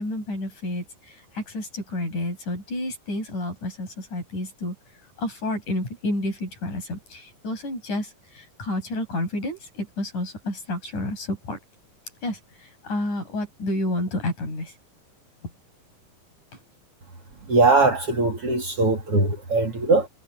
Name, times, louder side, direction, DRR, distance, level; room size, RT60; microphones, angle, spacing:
voice 1, 0.0-4.8 5.2-11.6 12.2-14.7, left 1 dB, 60° left, 9.0 m, -30 dB
voice 2, 17.5-20.1, right 3 dB, 45° right, 2.9 m, -20 dB
omnidirectional pair, 4.0 m